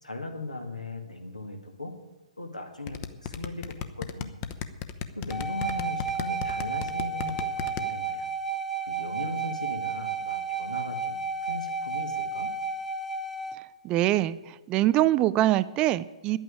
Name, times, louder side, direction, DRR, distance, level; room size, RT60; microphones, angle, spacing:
voice 1, 0.0-1.9 2.4-4.3 5.2-8.3 8.8-12.5, left 2 dB, 85° left, 3 dB, 2.2 m, -38 dB
sound 1, 2.9-7.8, left 9 dB, 30° left, 0.8 m, -34 dB
sound 2, 5.3-13.6, right 5 dB, ahead, 0.9 m, -32 dB
voice 2, 13.8-16.4, right 14 dB, 20° right, 16 dB, 0.4 m, -24 dB
11.0 x 8.9 x 8.8 m, 1.1 s
figure-of-eight pair, 125°, 4 cm